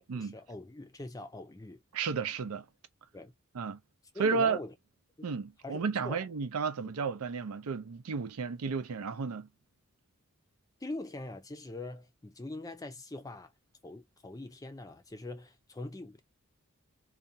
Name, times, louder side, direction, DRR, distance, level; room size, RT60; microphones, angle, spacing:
voice 1, 0.1-1.8 3.1-3.3 4.1-4.7 5.2-5.3 5.6-6.3 6.8-6.9 10.8-13.5 13.8-16.2, left 2 dB, 15° left, 0.4 m, -43 dB
voice 2, 1.9-2.6 3.5-3.8 4.2-4.6 5.2-9.5, right 5 dB, 85° right, 0.5 m, -32 dB
2.5 x 2.2 x 2.6 m
head